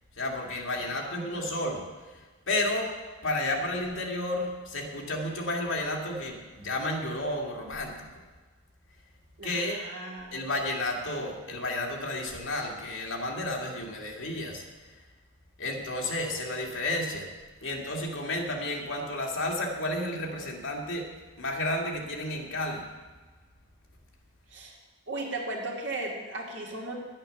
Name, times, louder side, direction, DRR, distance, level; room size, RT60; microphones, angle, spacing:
voice 1, 0.2-1.9 2.5-2.9 3.2-8.1 9.4-9.8 10.3-14.6 15.6-17.3 17.6-21.1 21.4-22.9, left 1 dB, 75° left, 0 dB, 2.2 m, -31 dB
voice 2, 0.7-1.5 9.4-10.4 24.5-24.8 25.1-26.9, right 2 dB, 65° right, -2 dB, 2.6 m, -37 dB
10.5 x 8.8 x 6.8 m, 1.3 s
head